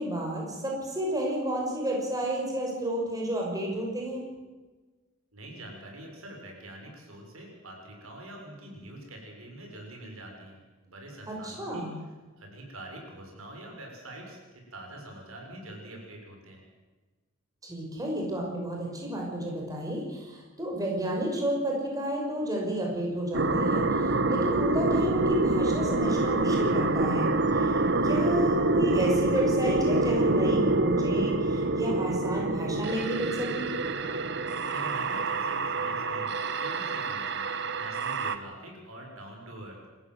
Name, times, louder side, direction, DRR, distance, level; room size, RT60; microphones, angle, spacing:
voice 1, 0.0-4.2 11.3-12.0 17.6-33.7, right 1 dB, 15° right, -1 dB, 5.9 m, -31 dB
voice 2, 5.3-11.9 12.4-14.4 14.7-16.6 34.6-37.5 37.8-39.9, right 1 dB, 90° right, 1 dB, 6.9 m, -45 dB
sound 1, 23.3-38.4, right 2 dB, 55° right, 1.4 m, -26 dB
28.0 x 15.0 x 8.0 m, 1.3 s
head